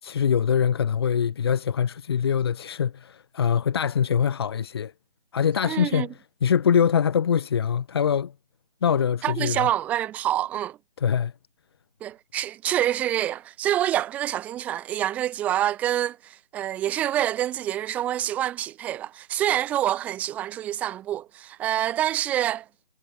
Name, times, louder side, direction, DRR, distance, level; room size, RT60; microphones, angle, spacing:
voice 1, 0.0-4.9 5.3-6.1 6.4-8.3 8.8-9.7 11.0-11.3, left 7 dB, 25° left, 5.8 m, -23 dB
voice 2, 5.6-6.1 9.2-10.8 12.0-22.6, right 12 dB, 5° right, 2.7 m, -26 dB
figure-of-eight pair, 175°, 31 cm